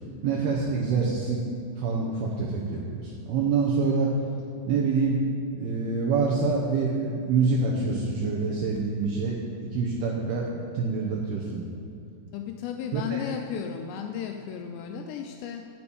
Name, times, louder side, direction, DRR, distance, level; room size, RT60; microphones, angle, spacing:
voice 1, 0.2-1.4 1.8-4.1 4.7-5.2 5.6-9.4 9.7-10.5 10.7-11.7 12.9-13.2, right 4 dB, 75° right, -3 dB, 2.4 m, -26 dB
voice 2, 12.3-15.7, left 8 dB, 80° left, 4 dB, 2.6 m, -34 dB
8.5 x 7.0 x 8.6 m, 2.5 s
omnidirectional pair, 5.3 m